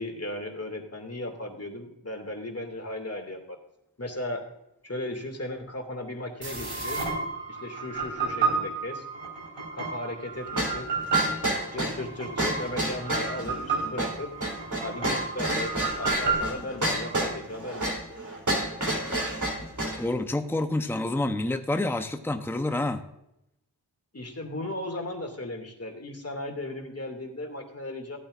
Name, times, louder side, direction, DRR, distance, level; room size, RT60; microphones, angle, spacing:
voice 1, 0.0-3.6 4.0-4.4 4.8-7.0 7.5-9.1 9.7-10.9 11.7-14.3 14.8-15.7 16.0-17.9 24.1-28.2, left 1 dB, 35° left, 4 dB, 2.5 m, -36 dB
sound 1, 6.4-17.2, right 4 dB, 85° right, 3.5 m, -32 dB
sound 2, 10.6-20.0, right 1 dB, 45° right, 3.4 m, -30 dB
voice 2, 20.0-23.0, left 2 dB, 5° left, 7 dB, 0.8 m, -28 dB
14.5 x 8.9 x 2.6 m, 0.84 s
cardioid pair, 40°, 43 cm